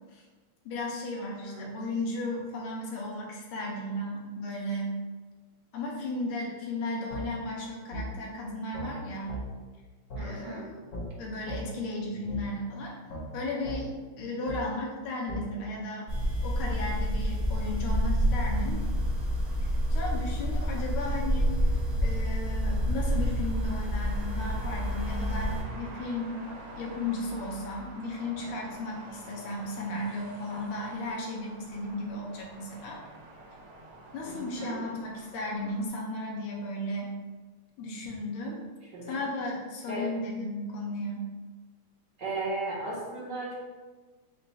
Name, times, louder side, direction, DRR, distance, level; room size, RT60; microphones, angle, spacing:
voice 1, 0.6-4.9 5.7-9.4 10.2-10.7 11.2-13.0 13.3-13.9 14.2-16.1 16.4-18.8 19.9-21.6 22.0-26.4 26.8-33.0 34.1-37.1 37.8-38.6 39.0-41.3, left 1 dB, 80° left, -2 dB, 1.5 m, -35 dB
voice 2, 1.4-1.8 10.2-10.7 34.3-34.8 38.9-39.2 39.9-40.1 42.2-43.5, right 2 dB, 60° right, -4 dB, 1.3 m, -36 dB
sound 1, 7.1-7.2 7.9-8.1 8.7-8.9 9.3-9.4 10.1-10.2 10.9-11.1 11.5-11.6 12.3-12.4 13.1-13.2 13.6-13.8 14.5-14.6 15.3-15.4, right 1 dB, 55° left, 1.2 m, -36 dB
sound 2, 16.1-25.6, equal, 30° right, 0.6 m, -28 dB
sound 3, 18.4-35.9, right 2 dB, 85° right, 1.6 m, -48 dB
4.2 x 2.3 x 4.0 m, 1.4 s
omnidirectional pair, 2.4 m